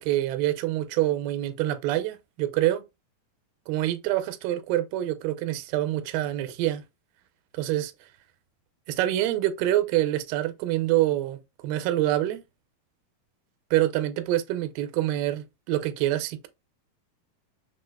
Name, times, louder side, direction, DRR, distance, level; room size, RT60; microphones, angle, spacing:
voice 1, 0.0-2.8 3.7-6.8 7.6-7.9 8.9-12.4 13.7-16.5, right 14 dB, 80° right, 2.3 m, -26 dB
6.1 x 3.2 x 2.2 m
omnidirectional pair, 4.1 m